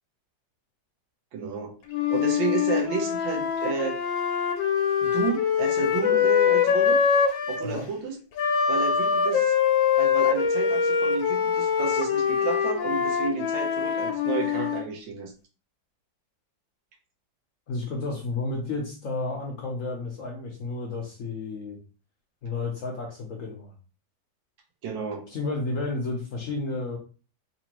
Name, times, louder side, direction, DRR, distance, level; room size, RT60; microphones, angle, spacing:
voice 1, 1.3-1.7 2.1-4.0 5.0-7.0 7.5-8.2 8.7-9.5 10.0-15.3 24.8-25.2, right 5 dB, 80° right, 4 dB, 1.5 m, -31 dB
Wind instrument woodwind instrument, 1.9-7.7 8.4-14.8, left 7 dB, 85° left, 1.4 m, -24 dB
voice 2, 17.7-21.8 22.4-23.7 25.3-27.0, left 3 dB, 60° left, 0 dB, 0.9 m, -31 dB
4.1 x 2.6 x 2.9 m, 0.36 s
omnidirectional pair, 2.0 m